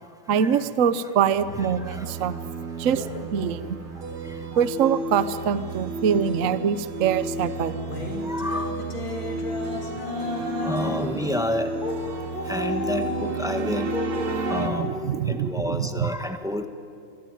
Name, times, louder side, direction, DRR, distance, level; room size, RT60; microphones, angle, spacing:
voice 1, 0.3-2.4 2.8-3.1 3.3-3.7 4.5-7.8 14.6-16.1, right 8 dB, 55° right, 12 dB, 0.9 m, -24 dB
sound 1, 1.3-14.7, right 2 dB, 90° right, 3.5 m, -32 dB
voice 2, 2.9-3.3 3.5-3.6 4.5-4.6 8.2-8.7 10.6-11.7 12.5-13.9 14.5-14.9 15.3-16.6, left 1 dB, ahead, 5 dB, 1.2 m, -29 dB
sound 2, 7.8-11.1 11.8-12.0 12.3-14.1 14.4-14.9, left 2 dB, 65° left, 3.8 m, -32 dB
25.5 x 24.0 x 9.4 m, 2.4 s
omnidirectional pair, 2.3 m